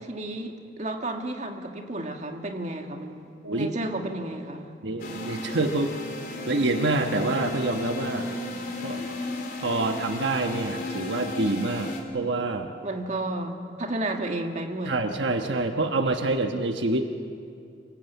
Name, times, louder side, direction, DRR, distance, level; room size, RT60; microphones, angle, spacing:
voice 1, 0.0-4.7 12.8-15.0, right 1 dB, 40° right, 3 dB, 1.8 m, -32 dB
voice 2, 4.8-5.9 6.5-8.3 8.8-9.0 9.6-12.7 14.9-17.0, right 2 dB, 75° right, 5 dB, 1.2 m, -26 dB
sound 1, 5.0-12.0, left 2 dB, 50° left, 3.2 m, -34 dB
27.0 x 18.5 x 8.2 m, 2.4 s
head